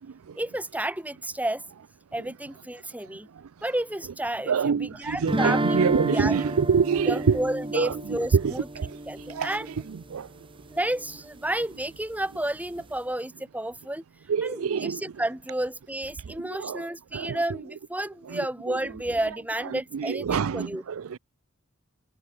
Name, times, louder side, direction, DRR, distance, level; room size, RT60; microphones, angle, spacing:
voice 1, 0.4-1.6 2.1-3.3 3.6-6.4 7.1-8.7 9.1-9.7 10.7-14.0 14.4-20.8, right 1 dB, 5° right, 3.9 m, -31 dB
voice 2, 4.5-7.4 7.7-7.9 8.3-8.9 9.3-9.5 10.1-10.3 14.3-15.0 16.6-16.8 17.1-17.4 18.3-18.4 19.7-21.2, right 6 dB, 75° right, 0.4 m, -25 dB
sound 1, 5.3-10.2, right 1 dB, 25° right, 1.7 m, -30 dB
open air
head